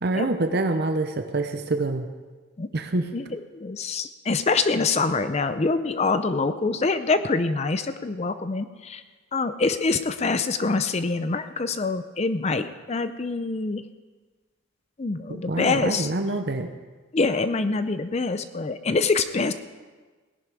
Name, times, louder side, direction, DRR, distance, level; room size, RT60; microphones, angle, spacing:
voice 1, 0.0-2.1 2.7-3.1 15.3-16.7, right 2 dB, 50° right, 7 dB, 0.7 m, -26 dB
voice 2, 3.1-9.0 9.3-13.8 15.0-16.1 17.1-19.5, left 3 dB, 30° left, 11 dB, 0.5 m, -25 dB
17.5 x 11.0 x 4.8 m, 1.3 s
head